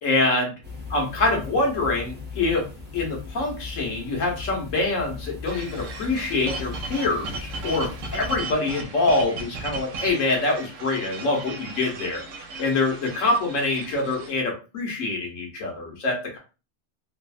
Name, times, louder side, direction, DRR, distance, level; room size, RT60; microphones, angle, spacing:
voice 1, 0.0-0.5 0.9-2.7 2.9-12.2 12.6-16.4, left 2 dB, 80° left, 0 dB, 1.3 m, -25 dB
sound 1, 0.6-8.4, left 4 dB, 10° right, 0.8 m, -38 dB
sound 2, 5.5-14.3, right 3 dB, 80° right, 1.0 m, -37 dB
3.1 x 2.0 x 2.4 m, 0.32 s
omnidirectional pair, 1.3 m